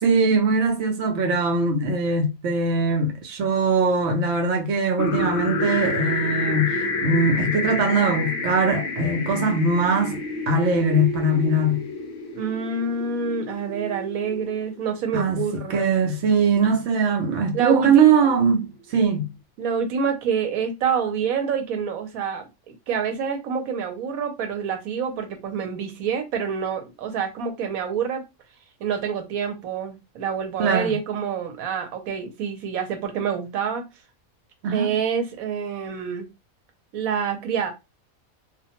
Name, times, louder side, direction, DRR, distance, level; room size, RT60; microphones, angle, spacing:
voice 1, 0.0-10.2 10.5-11.9 15.1-15.4 15.7-19.3 30.6-30.9 34.6-34.9, right 3 dB, 65° right, 0.9 m, -21 dB
sound 1, 5.0-14.9, left 2 dB, 60° left, 0.6 m, -29 dB
voice 2, 12.3-15.9 17.5-18.3 19.6-28.2 28.8-33.8 34.7-36.3 36.9-37.7, right 6 dB, 90° right, 1.1 m, -27 dB
2.5 x 2.2 x 2.8 m
omnidirectional pair, 1.4 m